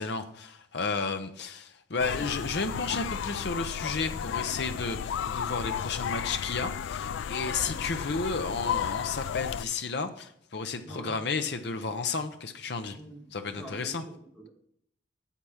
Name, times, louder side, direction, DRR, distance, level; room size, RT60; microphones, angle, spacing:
voice 1, 0.0-13.0 13.3-14.0, left 4 dB, 60° left, 7 dB, 0.7 m, -32 dB
sound 1, 2.0-9.6, left 8 dB, 75° left, 0.3 m, -33 dB
voice 2, 13.5-14.5, right 1 dB, ahead, -2 dB, 1.8 m, -45 dB
8.2 x 7.5 x 5.7 m, 0.69 s
head